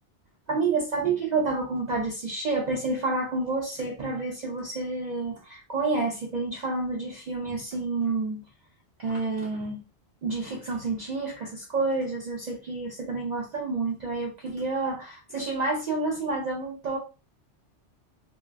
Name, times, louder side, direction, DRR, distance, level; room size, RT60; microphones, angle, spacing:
voice 1, 0.5-8.4 9.0-9.8 10.2-17.0, right 3 dB, 65° right, 0 dB, 0.4 m, -29 dB
2.3 x 2.2 x 3.2 m, 0.32 s
omnidirectional pair, 1.2 m